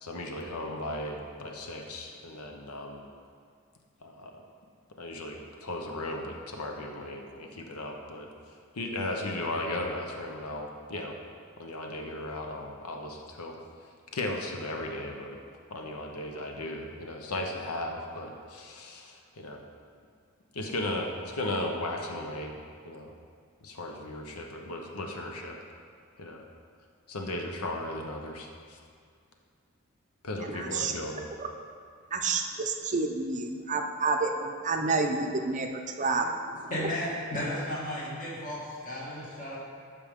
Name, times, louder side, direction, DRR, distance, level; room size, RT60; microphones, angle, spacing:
voice 1, 0.0-3.1 4.0-4.3 5.0-8.3 8.7-11.1 11.6-13.5 14.1-15.4 15.7-19.6 20.5-22.5 22.8-23.1 23.6-25.5 26.2-26.4 27.1-28.8 30.2-31.3, left 1 dB, 80° left, 2 dB, 0.8 m, -36 dB
voice 2, 30.5-30.9 31.4-31.5 32.1-35.7 36.0-36.3 36.6-36.7, right 4 dB, 35° right, 4 dB, 0.6 m, -29 dB
voice 3, 36.7-39.6, left 1 dB, 35° left, -6 dB, 2.1 m, -34 dB
12.0 x 5.1 x 3.6 m, 2.2 s
head